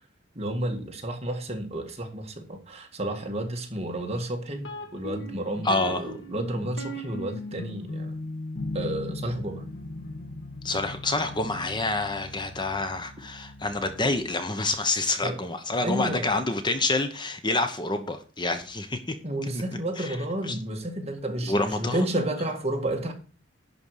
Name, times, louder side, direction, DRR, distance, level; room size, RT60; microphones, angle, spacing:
voice 1, 0.4-8.1 8.7-9.7 15.2-15.4 15.8-16.4 19.2-23.1, right 1 dB, 35° right, 1.8 m, -31 dB
sound 1, 4.6-14.4, left 1 dB, 70° left, 1.7 m, -38 dB
voice 2, 5.6-6.0 10.6-19.0 20.0-20.2 20.5-20.6 21.5-22.0, left 2 dB, 25° left, 1.0 m, -27 dB
11.0 x 4.6 x 6.5 m
head